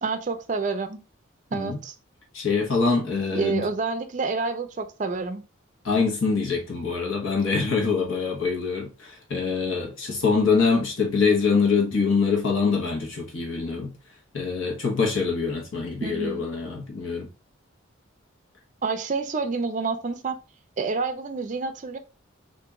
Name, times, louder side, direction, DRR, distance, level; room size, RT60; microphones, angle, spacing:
voice 1, 0.0-1.0 1.5-1.9 3.3-5.4 16.0-16.5 18.8-20.4 20.8-22.0, right 4 dB, 35° right, 0.4 m, -28 dB
voice 2, 2.3-3.7 5.8-13.9 14.3-17.3, left 4 dB, 70° left, 1.1 m, -24 dB
2.9 x 2.6 x 3.5 m
head